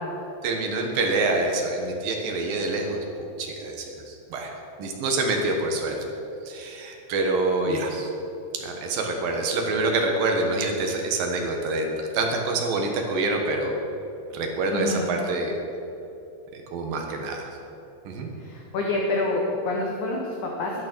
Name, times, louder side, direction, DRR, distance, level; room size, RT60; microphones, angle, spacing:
voice 1, 0.4-4.5 4.8-6.0 6.5-8.1 8.5-13.8 14.3-15.5 16.5-17.5 18.0-18.3, right 2 dB, 65° right, 2 dB, 2.7 m, -26 dB
voice 2, 14.7-15.1 18.4-20.9, left 2 dB, 65° left, -1 dB, 2.1 m, -28 dB
11.5 x 11.5 x 6.1 m, 2.9 s
omnidirectional pair, 4.8 m